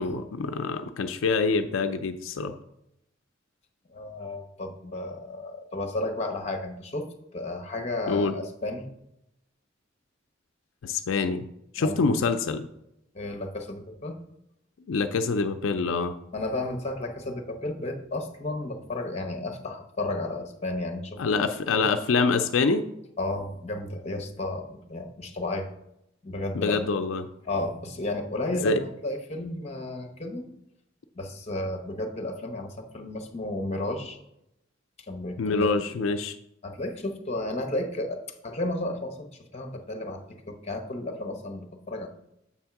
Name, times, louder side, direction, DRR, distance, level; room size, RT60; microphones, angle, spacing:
voice 1, 0.0-2.5 8.1-8.3 10.8-11.5 11.7-12.7 14.9-16.1 21.2-22.8 26.5-27.3 28.6-28.8 35.4-36.3, left 4 dB, 85° left, 8 dB, 0.4 m, -25 dB
voice 2, 3.9-8.9 11.8-12.0 13.1-14.2 16.3-21.2 23.2-25.7 26.2-26.8 27.4-30.5 31.1-34.2 35.1-35.8 36.6-40.2 40.5-42.1, left 2 dB, 35° left, 5 dB, 0.9 m, -33 dB
7.1 x 3.5 x 5.8 m, 0.82 s
head